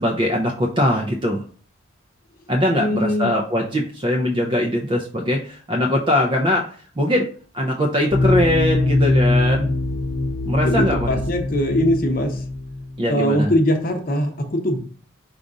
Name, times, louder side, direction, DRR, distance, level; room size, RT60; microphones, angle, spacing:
voice 1, 0.0-1.4 2.5-6.7 7.0-7.3 7.5-9.7 10.4-11.2 13.0-13.5, left 1 dB, 25° right, 0 dB, 0.4 m, -21 dB
voice 2, 2.8-3.3 10.6-12.4 13.1-14.8, equal, 45° left, 4 dB, 0.8 m, -21 dB
sound 1, 8.1-13.1, left 2 dB, 75° left, 0.7 m, -22 dB
5.1 x 2.4 x 3.8 m, 0.43 s
head